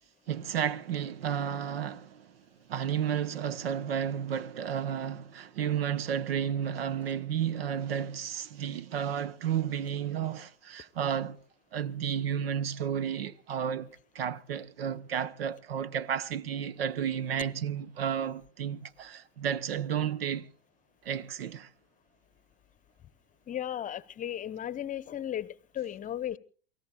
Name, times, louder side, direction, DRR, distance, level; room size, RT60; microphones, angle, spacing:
voice 1, 0.3-2.4 2.7-11.4 11.7-20.5 21.0-21.7, right 8 dB, 70° right, 0.9 m, -32 dB
voice 2, 23.5-26.4, left 11 dB, 25° left, 0.8 m, -35 dB
28.5 x 18.5 x 2.3 m
hypercardioid pair, 85°, 30 cm